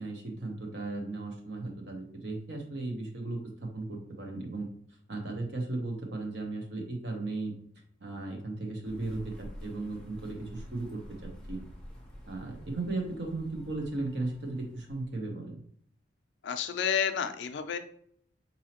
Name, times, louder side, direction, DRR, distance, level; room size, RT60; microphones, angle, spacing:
voice 1, 0.0-4.7 5.1-7.5 8.0-11.6 12.2-15.6, right 2 dB, 60° right, 2 dB, 0.8 m, -36 dB
sound 1, 8.8-15.1, equal, 5° left, 0.6 m, -48 dB
voice 2, 16.4-17.8, left 7 dB, 65° left, 8 dB, 0.4 m, -30 dB
4.1 x 2.7 x 2.8 m, 0.62 s
head